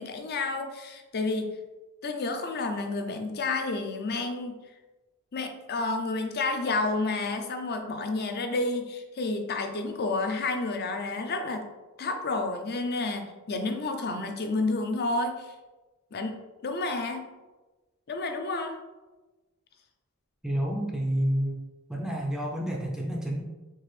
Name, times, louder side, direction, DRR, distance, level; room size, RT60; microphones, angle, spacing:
voice 1, 0.0-1.5 2.0-4.6 5.3-11.7 12.0-15.5 16.1-17.3 18.1-18.8, left 3 dB, 45° left, 5 dB, 0.6 m, -30 dB
voice 2, 20.4-21.6 21.9-23.4, right 1 dB, 5° right, -2 dB, 0.4 m, -29 dB
4.6 x 3.4 x 3.2 m, 1.1 s
head